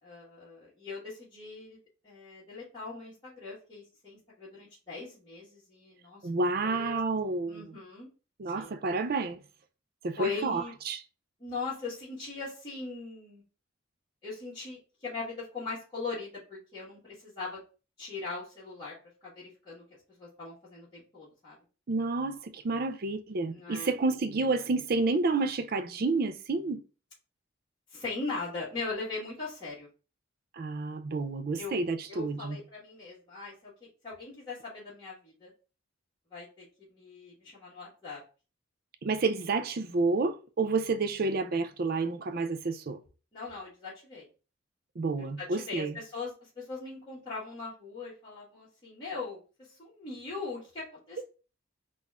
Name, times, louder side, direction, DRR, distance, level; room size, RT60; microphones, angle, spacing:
voice 1, 0.0-1.8 2.0-6.2 6.6-7.0 7.2-8.1 8.5-8.7 10.2-10.7 11.4-13.4 14.2-17.6 18.0-18.9 19.2-19.8 20.2-21.6 23.5-23.9 27.9-29.9 31.6-31.7 32.1-33.7 34.0-35.5 36.3-38.2 43.3-44.3 45.2-51.2, left 3 dB, 25° left, 1.5 m, -40 dB
voice 2, 6.2-7.8 8.4-9.4 10.0-11.0 21.9-26.8 30.5-32.6 39.0-43.0 45.0-45.9, right 3 dB, 50° right, 0.4 m, -30 dB
4.0 x 2.5 x 4.2 m
head